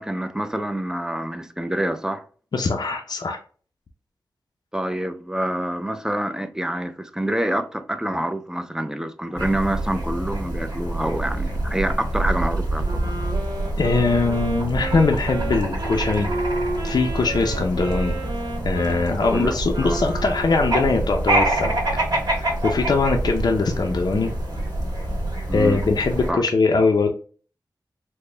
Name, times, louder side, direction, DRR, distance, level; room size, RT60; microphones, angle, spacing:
voice 1, 0.0-2.2 4.7-13.1 19.3-19.5 19.8-20.0 25.5-25.8 26.3-26.4, right 1 dB, 10° right, 0.4 m, -26 dB
voice 2, 2.5-3.4 13.8-16.3 16.8-18.2 18.6-21.8 22.2-24.3 25.5-27.1, left 4 dB, 65° left, 0.5 m, -21 dB
sound 1, 9.4-26.3, right 1 dB, 60° right, 1.7 m, -26 dB
Wind instrument woodwind instrument, 12.8-21.0, right 2 dB, 80° right, 1.0 m, -32 dB
4.1 x 2.1 x 3.2 m
wide cardioid pair, 80°, 8 cm